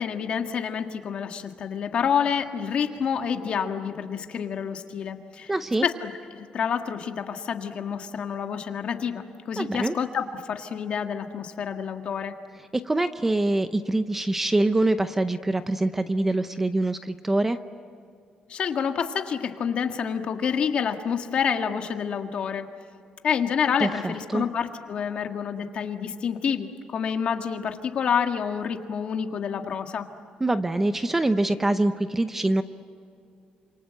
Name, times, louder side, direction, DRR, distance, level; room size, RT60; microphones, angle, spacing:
voice 1, 0.0-5.5 5.8-12.4 18.5-22.7 23.2-30.1, left 7 dB, 45° left, 5 dB, 1.8 m, -28 dB
voice 2, 5.5-5.9 9.6-9.9 12.7-17.6 23.8-24.4 30.4-32.6, right 2 dB, 10° right, 10 dB, 0.7 m, -24 dB
28.5 x 27.0 x 7.7 m, 2.5 s
cardioid pair, 165°, 3 cm